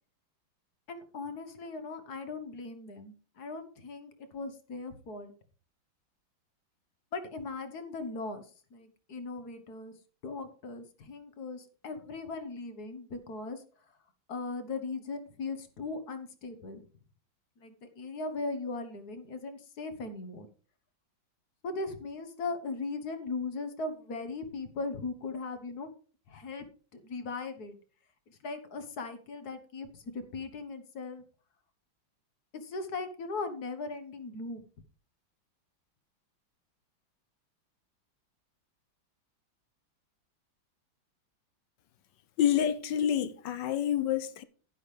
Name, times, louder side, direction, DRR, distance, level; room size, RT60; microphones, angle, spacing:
voice 1, 0.9-5.3 7.1-8.5 8.7-9.9 10.2-13.6 14.3-16.8 17.6-20.5 21.6-25.9 26.3-26.6 26.9-27.8 28.3-31.2 32.5-34.6, left 3 dB, 55° left, 1.7 m, -38 dB
voice 2, 42.4-44.4, left 10 dB, 70° left, 1.3 m, -28 dB
11.5 x 11.0 x 3.3 m
omnidirectional pair, 2.2 m